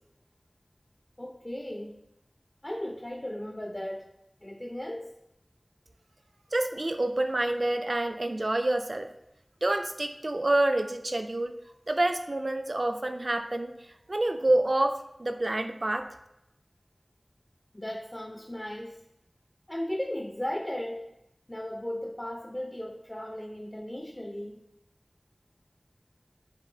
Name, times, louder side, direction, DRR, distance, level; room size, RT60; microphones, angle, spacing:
voice 1, 1.2-2.0 2.6-4.1 4.4-5.1 17.7-19.0 19.7-21.1 21.5-24.6, left 1 dB, 25° left, 2 dB, 0.4 m, -36 dB
voice 2, 6.5-9.1 9.6-11.5 11.9-13.7 14.1-16.1, right 1 dB, 60° right, 7 dB, 0.4 m, -27 dB
7.2 x 2.5 x 2.7 m, 0.84 s
wide cardioid pair, 45°, 0 cm